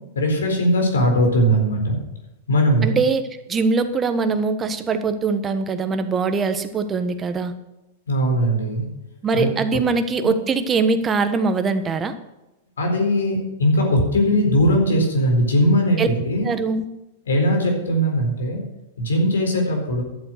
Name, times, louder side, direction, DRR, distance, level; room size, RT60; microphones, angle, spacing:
voice 1, 0.1-2.0 2.5-3.0 8.1-8.8 9.3-9.5 10.2-10.3 12.8-16.5 17.3-18.6 19.0-20.0, equal, 85° left, 2 dB, 4.1 m, -19 dB
voice 2, 2.8-7.5 9.2-12.1 16.0-16.1 16.4-16.8, right 4 dB, 25° right, 9 dB, 1.2 m, -22 dB
11.5 x 7.9 x 6.4 m, 0.97 s
hypercardioid pair, 110°, 0 cm